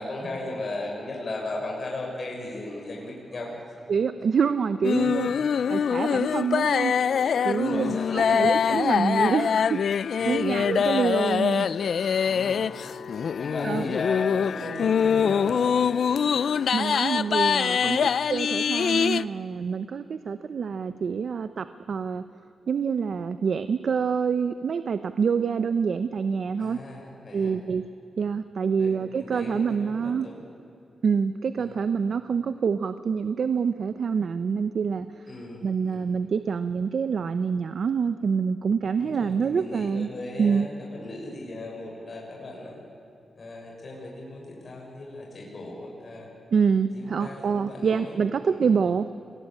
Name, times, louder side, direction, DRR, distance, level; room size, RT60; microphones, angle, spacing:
voice 1, 0.0-3.6 4.9-5.3 7.5-8.5 10.2-10.6 12.1-12.7 13.4-15.8 17.8-18.1 26.6-27.6 28.7-30.4 31.6-31.7 35.3-36.1 39.0-42.8 43.3-46.3 46.9-48.2 48.4-48.7, left 2 dB, 45° left, -2 dB, 6.5 m, -37 dB
voice 2, 3.9-5.3 5.7-6.9 7.4-12.2 13.6-13.8 16.7-22.2 22.7-26.8 27.3-27.8 28.2-30.3 31.0-35.3 35.6-40.1 40.4-40.7 46.5-49.1, right 6 dB, 65° right, 11 dB, 0.8 m, -26 dB
sound 1, 4.8-19.2, left 7 dB, 70° left, 0.6 m, -24 dB
28.5 x 21.0 x 8.8 m, 2.7 s
wide cardioid pair, 115°, 0 cm